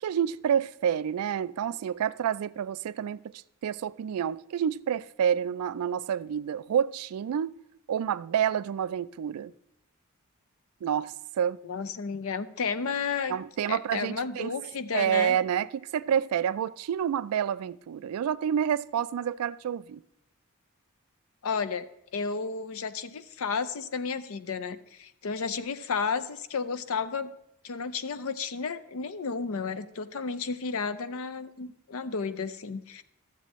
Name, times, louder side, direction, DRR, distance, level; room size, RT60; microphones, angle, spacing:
voice 1, 0.0-3.3 3.6-7.6 7.9-9.5 10.8-11.6 13.3-14.5 14.9-20.0, right 8 dB, 75° right, 0.3 m, -28 dB
voice 2, 11.6-13.4 13.7-15.4 21.4-21.9 22.1-27.3 27.6-33.0, left 5 dB, 65° left, 0.5 m, -32 dB
12.5 x 7.4 x 3.0 m
head